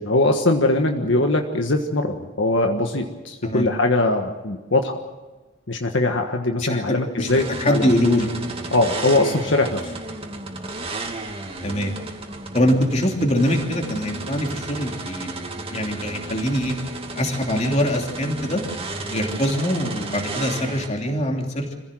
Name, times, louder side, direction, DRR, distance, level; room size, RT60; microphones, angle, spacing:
voice 1, 0.0-5.0 5.7-7.9 8.7-9.9, left 2 dB, 70° left, 4 dB, 1.5 m, -21 dB
sound 1, 7.3-20.9, right 2 dB, 30° right, 2.3 m, -33 dB
voice 2, 7.6-8.3 11.6-11.9 12.5-16.7 17.2-18.6 19.1-21.8, equal, 35° left, 2 dB, 2.9 m, -23 dB
26.0 x 16.0 x 7.7 m, 1.2 s
head